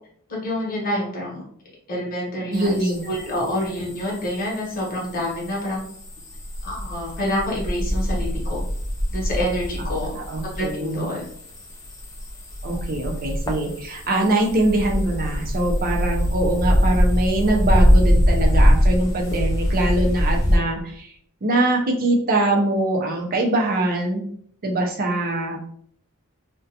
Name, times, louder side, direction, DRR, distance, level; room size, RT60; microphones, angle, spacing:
voice 1, 0.3-1.4 1.9-5.8 6.6-8.6 9.1-10.2 10.6-11.3, left 1 dB, 40° left, -4 dB, 0.9 m, -27 dB
sound 1, 2.5-20.6, equal, 15° left, 0.3 m, -23 dB
voice 2, 2.5-3.1 10.1-11.1 12.6-21.1 21.4-24.2 24.6-25.7, right 2 dB, 40° right, 1 dB, 0.5 m, -23 dB
2.4 x 2.2 x 2.6 m, 0.65 s
head